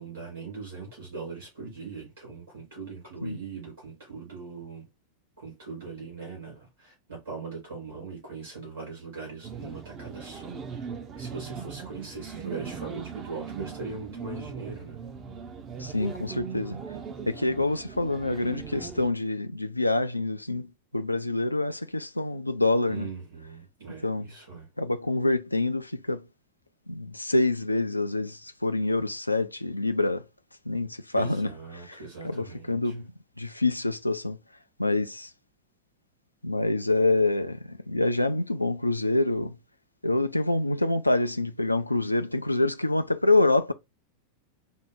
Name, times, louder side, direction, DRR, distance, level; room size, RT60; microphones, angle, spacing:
voice 1, 0.0-4.9 5.4-10.9 11.2-15.0 22.9-24.7 31.1-33.0, right 4 dB, 70° right, 2.5 m, -40 dB
sound 1, 9.4-19.1, right 6 dB, 30° right, 0.6 m, -39 dB
voice 2, 15.8-16.8 17.3-20.7 20.9-23.1 24.0-24.3 24.8-26.2 26.9-30.2 30.7-31.5 31.9-32.0 32.2-33.1 33.4-34.4 34.8-35.3 36.4-39.5 40.0-43.7, left 2 dB, 85° left, 0.3 m, -26 dB
4.2 x 2.1 x 3.5 m
figure-of-eight pair, 90°, 0 cm